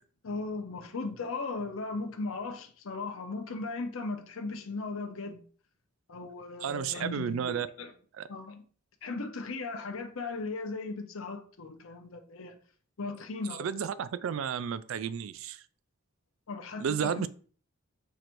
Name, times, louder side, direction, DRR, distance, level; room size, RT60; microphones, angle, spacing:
voice 1, 0.2-5.4 6.1-7.9 8.3-8.6 9.0-12.6 13.0-13.7 16.5-17.3, left 3 dB, 70° left, 0.7 m, -37 dB
voice 2, 6.6-7.7 8.2-8.3 13.6-15.6 16.8-17.3, right 7 dB, 70° right, 0.3 m, -32 dB
4.7 x 2.6 x 4.4 m
head